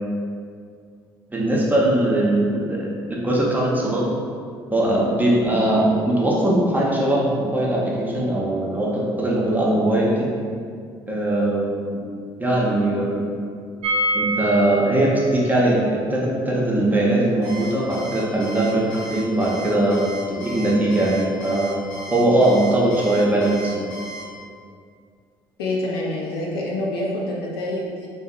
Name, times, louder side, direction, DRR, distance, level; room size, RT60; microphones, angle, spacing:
voice 1, 1.3-4.1 4.7-10.3 11.1-12.0 12.4-13.2 14.1-21.8 22.1-23.9, right 1 dB, 15° right, -4 dB, 0.6 m, -20 dB
sound 1, 13.8-19.6 19.9-20.0 20.2-20.3, right 1 dB, 55° right, 0.4 m, -29 dB
Alarm, 17.4-24.2, right 1 dB, 60° left, 0.9 m, -36 dB
voice 2, 25.6-28.1, left 1 dB, 80° left, -3 dB, 0.4 m, -26 dB
2.6 x 2.0 x 2.4 m, 2.2 s
hypercardioid pair, 55°, 13 cm